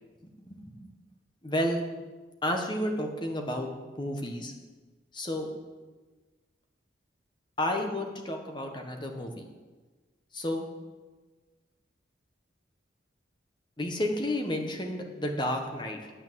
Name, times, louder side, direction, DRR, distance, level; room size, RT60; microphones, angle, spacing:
voice 1, 0.2-0.7 1.4-1.8 2.4-3.7 4.0-4.5 5.1-5.5 7.6-9.4 10.3-10.6 13.8-16.1, left 1 dB, 25° left, 3 dB, 1.4 m, -31 dB
10.0 x 8.7 x 7.7 m, 1.3 s
head